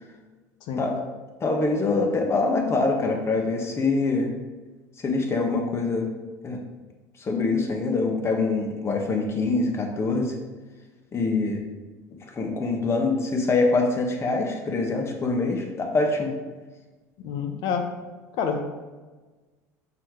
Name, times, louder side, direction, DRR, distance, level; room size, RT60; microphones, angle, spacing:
voice 1, 1.4-4.3 5.0-6.1 6.4-6.6 7.2-10.3 11.1-11.6 12.3-16.3, left 3 dB, 30° left, 2 dB, 1.5 m, -24 dB
voice 2, 17.2-17.9 18.3-18.6, left 6 dB, 60° left, 5 dB, 1.1 m, -27 dB
5.9 x 4.9 x 4.8 m, 1.3 s
supercardioid pair, 90°, 9 cm